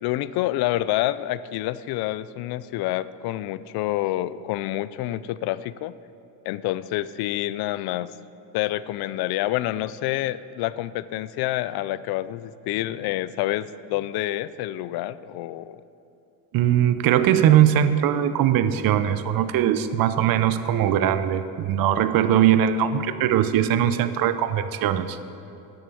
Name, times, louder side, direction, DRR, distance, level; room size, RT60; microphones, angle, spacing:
voice 1, 0.0-5.9 6.5-8.1 8.5-15.8, left 15 dB, 60° left, 17 dB, 0.6 m, -28 dB
voice 2, 16.5-25.2, right 10 dB, 55° right, 12 dB, 0.8 m, -20 dB
10.0 x 7.9 x 8.4 m, 2.8 s
supercardioid pair, 100°, 43 cm